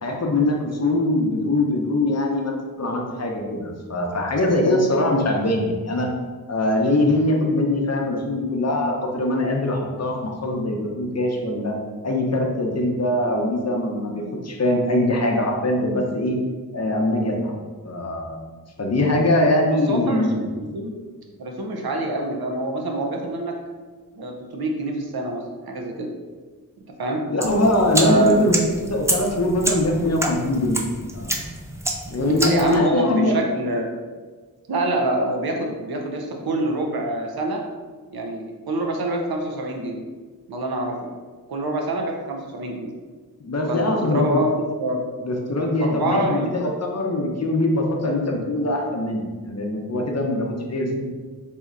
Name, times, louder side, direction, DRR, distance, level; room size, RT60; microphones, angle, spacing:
voice 1, 0.0-6.1 6.5-11.7 12.0-16.4 16.7-17.5 17.8-18.4 18.8-20.4 27.3-28.5 28.9-30.8 31.1-31.3 32.1-33.4 43.4-44.4 45.2-51.0, left 1 dB, 45° left, 0 dB, 0.6 m, -22 dB
voice 2, 19.9-20.9 21.4-23.6 24.1-26.1 27.0-27.2 28.0-28.5 32.3-33.9 34.7-37.6 38.1-40.0 40.5-41.1 41.5-42.9 43.7-45.0 45.8-46.5, right 1 dB, 85° right, 1 dB, 0.6 m, -25 dB
sound 1, 27.4-32.8, right 1 dB, 10° right, 0.3 m, -28 dB
4.2 x 2.7 x 2.4 m, 1.4 s
wide cardioid pair, 60°, 36 cm